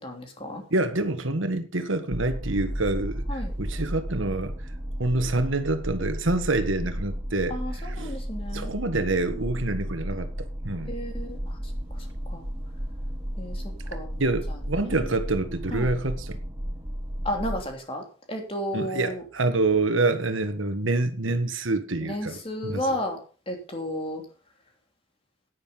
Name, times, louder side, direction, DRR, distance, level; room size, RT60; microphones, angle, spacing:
voice 1, 0.0-0.6 3.3-3.5 7.5-8.7 9.3-9.5 10.8-11.4 12.0-12.1 12.3-12.5 13.4-13.6 13.9-14.2 14.8-15.0 15.7-15.9 17.2-19.2 22.1-23.2 23.5-24.2, equal, 30° left, 3.0 m, -32 dB
voice 2, 0.7-4.5 5.0-8.1 8.5-10.3 10.6-10.9 13.9-16.4 18.7-23.0, right 2 dB, 80° right, 1.6 m, -27 dB
sound 1, 2.1-17.6, equal, 20° right, 1.5 m, -33 dB
10.5 x 9.7 x 5.5 m
head